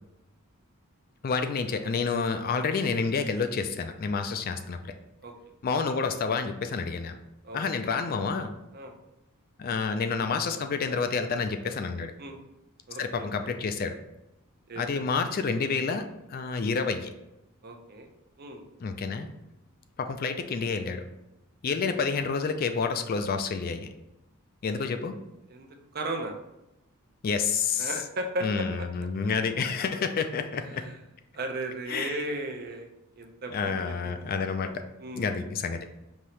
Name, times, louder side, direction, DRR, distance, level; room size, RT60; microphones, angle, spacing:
voice 1, 1.2-4.9 5.6-7.2 7.5-8.6 9.6-12.1 13.0-14.0 14.8-17.1 18.8-19.3 20.0-21.0 21.6-23.9 24.6-25.1 27.2-27.9 28.4-30.8 31.9-32.2 33.5-34.8 35.1-35.8, left 5 dB, 45° left, 7 dB, 0.3 m, -29 dB
voice 2, 12.9-13.3 14.7-15.0 17.6-18.1 18.4-18.6 21.7-21.9 25.5-26.3 27.8-28.9 30.7-31.0 31.3-34.2 35.0-35.3, right 1 dB, 45° right, 4 dB, 0.6 m, -36 dB
5.4 x 2.8 x 3.2 m, 0.91 s
head